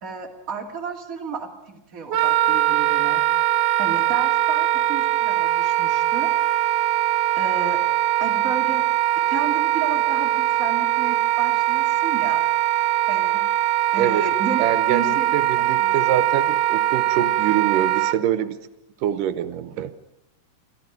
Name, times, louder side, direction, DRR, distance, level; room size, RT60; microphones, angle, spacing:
voice 1, 0.0-3.2 3.8-6.3 7.4-7.8 8.2-8.8 9.3-12.4 13.1-13.4 13.9-14.6 14.9-15.3 15.8-15.9, right 5 dB, 25° right, 1 dB, 2.8 m, -32 dB
Wind instrument woodwind instrument, 2.1-18.2, right 13 dB, 65° right, 1.6 m, -21 dB
voice 2, 14.6-18.6 19.0-19.9, right 10 dB, 85° right, 13 dB, 2.5 m, -25 dB
24.0 x 15.0 x 9.3 m, 0.93 s
omnidirectional pair, 3.7 m